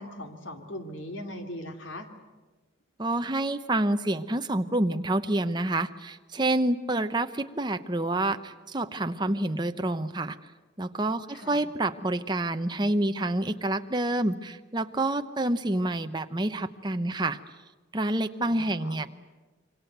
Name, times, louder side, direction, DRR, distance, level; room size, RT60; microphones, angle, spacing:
voice 1, 0.0-2.1 11.3-11.6 18.4-19.1, left 1 dB, 80° left, 5 dB, 2.9 m, -40 dB
voice 2, 3.0-10.4 10.8-17.4 17.9-19.1, right 1 dB, 20° right, 8 dB, 0.9 m, -28 dB
27.0 x 24.0 x 8.1 m, 1.3 s
head